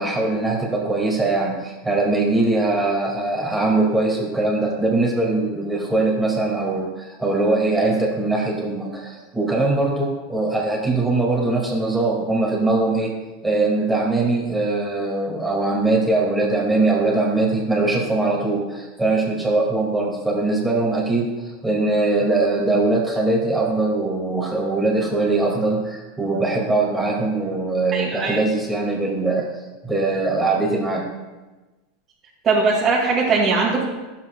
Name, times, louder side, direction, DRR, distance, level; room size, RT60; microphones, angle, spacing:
voice 1, 0.0-13.1 13.4-29.5 29.8-31.0, right 2 dB, 10° right, -2 dB, 1.9 m, -21 dB
voice 2, 27.9-28.4 32.4-33.8, right 4 dB, 30° right, -5 dB, 2.0 m, -20 dB
11.0 x 7.4 x 2.2 m, 1.2 s
hypercardioid pair, 110°, 0 cm